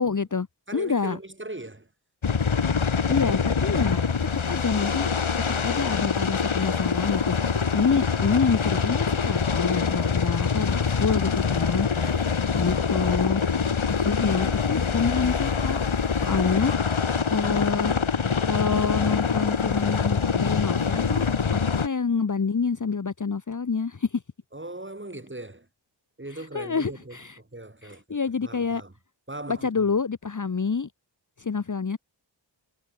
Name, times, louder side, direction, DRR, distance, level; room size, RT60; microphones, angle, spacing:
voice 1, 0.0-0.5 0.7-1.2 3.1-4.0 4.5-5.1 5.6-11.9 12.6-13.4 13.9-15.8 16.2-16.7 17.3-18.0 18.4-21.3 21.8-24.2 26.5-27.3 27.8-28.8 29.5-30.9 31.4-32.0, left 5 dB, 40° left, 1.1 m, -27 dB
voice 2, 0.7-1.9 11.9-12.5 24.5-25.7 26.2-28.2 28.4-28.9 29.3-29.9, right 2 dB, 25° right, 6.7 m, -39 dB
sound 1, 2.2-21.9, left 5 dB, 75° left, 3.1 m, -25 dB
wide cardioid pair, 55°, 48 cm